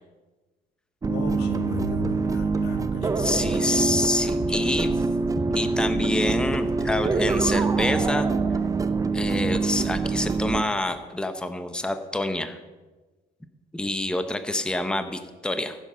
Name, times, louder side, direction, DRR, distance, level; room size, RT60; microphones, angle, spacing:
voice 1, 1.0-3.6, left 4 dB, 75° left, 6 dB, 1.6 m, -35 dB
sound 1, 1.0-10.6, right 4 dB, 20° right, 0.6 m, -25 dB
voice 2, 3.2-5.0 5.4-8.3 9.1-12.6 13.7-15.8, left 1 dB, 5° left, 9 dB, 0.9 m, -27 dB
14.5 x 7.4 x 5.7 m, 1.2 s
cardioid pair, 110°, 17 cm